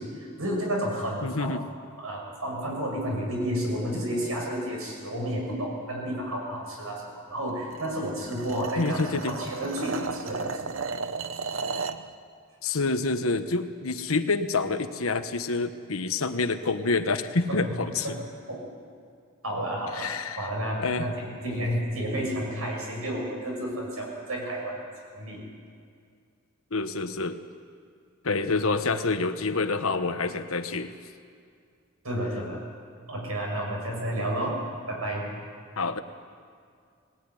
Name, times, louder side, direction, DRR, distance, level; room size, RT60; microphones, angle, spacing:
voice 1, 0.0-1.5 2.0-10.7 17.5-18.2 18.5-18.6 19.4-20.1 20.4-24.8 25.1-25.4 32.0-32.6 33.1-34.6 34.9-35.3, equal, 85° right, -1 dB, 7.5 m, -31 dB
voice 2, 1.2-1.6 8.8-9.3 12.6-18.1 19.9-20.5 20.8-21.1 21.4-21.7 26.7-27.4 28.2-30.9 34.1-34.3 35.8-36.0, left 3 dB, 75° left, 8 dB, 1.3 m, -27 dB
sound 1, 7.7-12.1, right 4 dB, 65° right, 0.9 m, -34 dB
20.0 x 18.0 x 9.9 m, 2.3 s
head